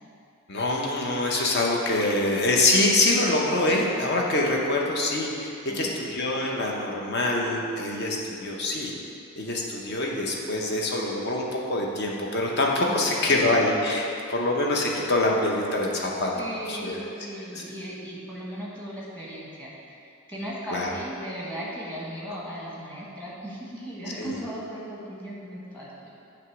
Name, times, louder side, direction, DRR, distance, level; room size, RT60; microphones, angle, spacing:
voice 1, 0.5-8.9 9.4-16.3 16.7-17.0 17.5-17.6 20.7-20.9 24.2-24.4, left 2 dB, 50° left, -1 dB, 0.8 m, -25 dB
voice 2, 12.8-13.4 16.3-26.1, equal, 10° left, -6 dB, 1.2 m, -37 dB
7.8 x 3.0 x 6.0 m, 2.6 s
head